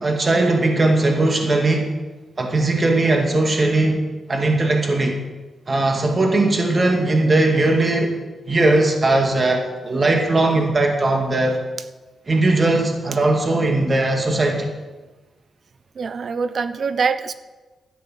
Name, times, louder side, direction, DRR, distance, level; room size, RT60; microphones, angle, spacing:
voice 1, 0.0-1.9 2.4-5.2 5.7-8.2 8.5-11.6 12.3-14.7, right 2 dB, 35° right, 3 dB, 2.4 m, -19 dB
voice 2, 16.0-17.3, right 5 dB, 55° right, 13 dB, 0.7 m, -24 dB
13.0 x 9.2 x 7.5 m, 1.2 s
cardioid pair, 105°, 0 cm